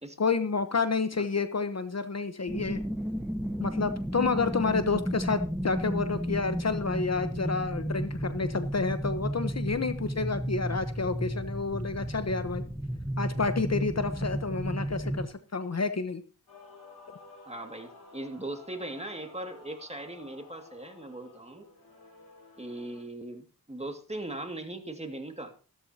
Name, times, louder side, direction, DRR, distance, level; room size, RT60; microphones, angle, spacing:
voice 1, 0.2-2.8 3.6-12.6 13.2-16.2, left 4 dB, 45° left, 10 dB, 1.0 m, -29 dB
sound 1, 2.5-15.3, equal, ahead, 1.0 m, -33 dB
Male singing / Female singing / Musical instrument, 16.5-23.0, left 3 dB, 85° left, 4.6 m, -53 dB
voice 2, 17.5-21.7 22.6-25.5, right 1 dB, 15° right, 5 dB, 2.1 m, -39 dB
14.5 x 13.5 x 2.8 m, 0.36 s
wide cardioid pair, 70°, 37 cm